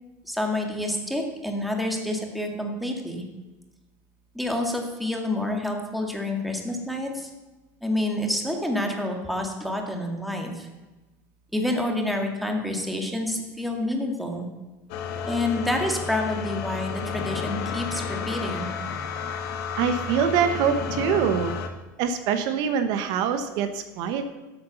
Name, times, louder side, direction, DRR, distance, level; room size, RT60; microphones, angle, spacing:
voice 1, 0.3-3.2 4.3-7.3 7.8-10.7 11.5-14.5 15.3-18.7, left 1 dB, ahead, 2 dB, 2.1 m, -28 dB
sound 1, 14.9-21.7, left 5 dB, 75° left, 1.6 m, -31 dB
voice 2, 19.8-21.5 22.0-24.3, right 7 dB, 65° right, 9 dB, 1.2 m, -24 dB
12.5 x 8.2 x 7.1 m, 1.1 s
supercardioid pair, 130°, 8 cm